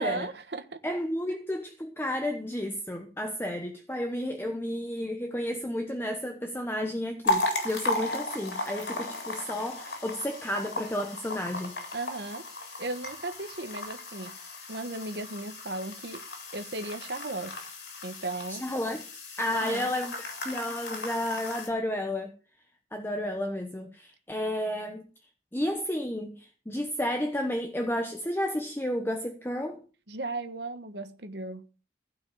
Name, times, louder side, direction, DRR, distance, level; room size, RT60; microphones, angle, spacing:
voice 1, 0.0-0.8 11.9-16.2 16.5-17.7 18.0-18.7 19.5-19.9 30.1-31.6, right 2 dB, 65° right, 1.3 m, -36 dB
voice 2, 0.8-11.8 18.5-19.0 19.4-22.3 22.9-25.0 25.5-29.8, left 1 dB, 10° left, 1.0 m, -32 dB
sound 1, 7.2-21.7, left 2 dB, 65° left, 4.0 m, -35 dB
15.5 x 5.5 x 6.9 m
head